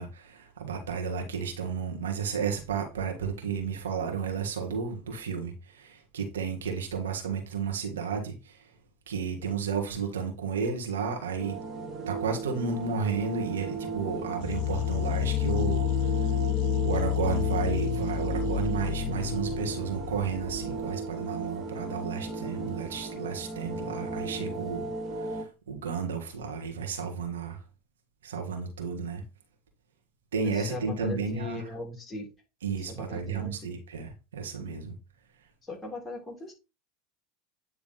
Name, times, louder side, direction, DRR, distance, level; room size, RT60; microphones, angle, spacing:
voice 1, 0.0-8.6 9.1-11.6 12.1-15.9 16.2-16.3 16.8-27.6 28.2-29.2 30.3-31.6 32.6-35.0, right 5 dB, 80° right, 1.7 m, -32 dB
sound 1, 11.4-25.4, right 4 dB, 30° right, 2.1 m, -35 dB
sound 2, 14.4-20.9, left 16 dB, 60° left, 0.3 m, -29 dB
voice 2, 30.5-32.3 32.9-33.5 35.7-36.5, left 1 dB, 15° left, 3.4 m, -38 dB
9.4 x 3.4 x 4.0 m
hypercardioid pair, 85°, 0 cm